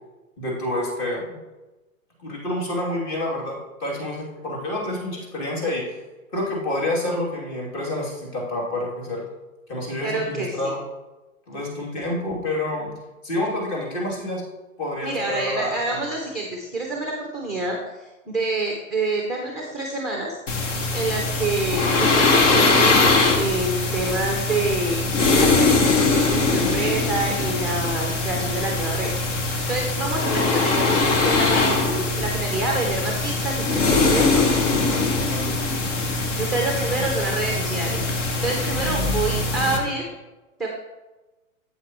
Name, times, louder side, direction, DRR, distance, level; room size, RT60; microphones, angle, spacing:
voice 1, 0.4-1.4 2.2-5.9 6.3-9.3 9.7-10.8 11.5-12.9 13.2-14.4 14.8-16.0 35.3-35.5, left 1 dB, 35° left, -2 dB, 2.8 m, -28 dB
voice 2, 10.0-10.6 15.0-34.5 36.4-40.1 40.6-40.7, right 2 dB, ahead, 0 dB, 0.4 m, -27 dB
sound 1, 20.5-39.8, left 3 dB, 60° left, 1.4 m, -22 dB
8.1 x 8.0 x 3.0 m, 1.1 s
hypercardioid pair, 125°, 42 cm